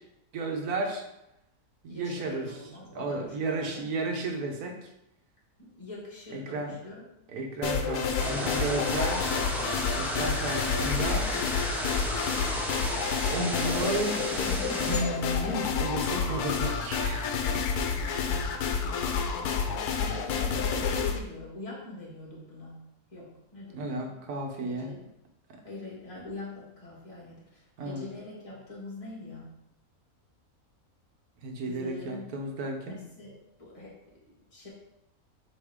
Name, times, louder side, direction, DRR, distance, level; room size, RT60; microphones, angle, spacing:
voice 1, 0.3-1.0 1.8-2.6 2.9-4.8 6.3-6.7 7.3-9.4 10.0-11.3 11.9-12.4 13.3-14.4 14.8-17.4 23.7-25.0 27.8-28.0 31.4-33.0, right 2 dB, 80° right, 3 dB, 1.4 m, -33 dB
voice 2, 1.9-3.9 5.6-7.0 19.9-22.8 23.1-24.2 24.6-25.0 25.6-29.5 31.6-32.3 32.8-33.3 33.6-34.7, left 2 dB, 25° left, -5 dB, 1.8 m, -44 dB
sound 1, 7.6-21.2, left 6 dB, 85° left, 1.2 m, -29 dB
sound 2, 8.2-15.0, equal, ahead, 0.4 m, -34 dB
7.9 x 3.4 x 3.6 m, 0.85 s
omnidirectional pair, 1.6 m